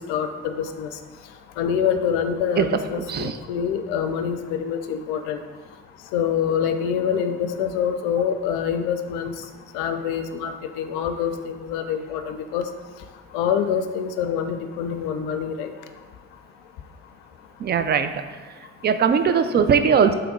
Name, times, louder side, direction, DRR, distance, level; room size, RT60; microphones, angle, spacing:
voice 1, 0.1-0.9 1.6-5.4 6.1-9.3 9.7-12.6 13.3-15.7, left 7 dB, 75° left, 7 dB, 0.5 m, -25 dB
voice 2, 3.0-3.4 17.6-18.1 18.8-20.1, right 6 dB, 30° right, 9 dB, 0.4 m, -19 dB
3.5 x 3.2 x 4.7 m, 1.4 s
hypercardioid pair, 50°, 35 cm